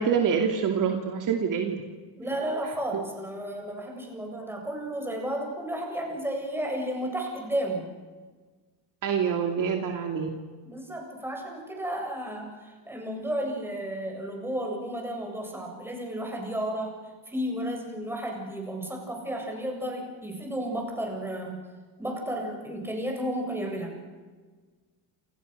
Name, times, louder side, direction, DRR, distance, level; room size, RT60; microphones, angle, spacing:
voice 1, 0.0-1.8 2.9-3.0 9.0-10.3, right 7 dB, 45° right, 3 dB, 2.9 m, -26 dB
voice 2, 2.2-7.9 10.6-16.9 17.3-21.6 22.0-24.0, right 1 dB, 5° right, 0 dB, 7.6 m, -33 dB
29.5 x 28.5 x 6.8 m, 1.4 s
cardioid pair, 150°, 45 cm